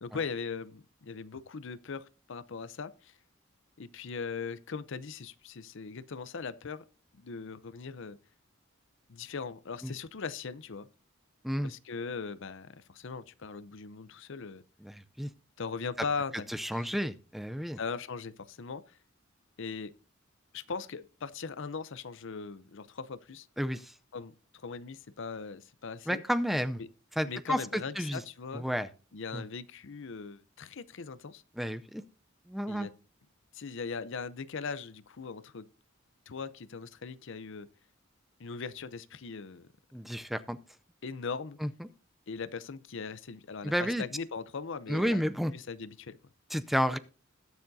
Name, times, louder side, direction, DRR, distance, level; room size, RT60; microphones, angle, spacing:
voice 1, 0.0-3.1 3.8-6.8 7.1-8.2 9.1-10.9 11.6-14.6 15.6-16.5 16.7-16.9 17.8-19.0 19.6-19.9 20.5-23.5 24.1-26.2 26.8-26.9 27.2-28.7 29.1-31.4 32.7-32.9 33.5-35.7 36.3-37.7 38.4-39.7 41.0-41.6 42.3-45.2 45.5-46.2, left 5 dB, 65° left, 0.7 m, -39 dB
voice 2, 14.8-15.3 16.5-17.8 23.6-23.9 26.1-26.8 27.2-28.2 28.5-28.9 29.3-29.4 31.6-32.0 32.5-32.9 39.9-40.6 41.6-41.9 43.6-44.0 44.9-45.5 46.5-47.0, equal, ahead, 0.5 m, -31 dB
20.5 x 7.1 x 2.7 m
head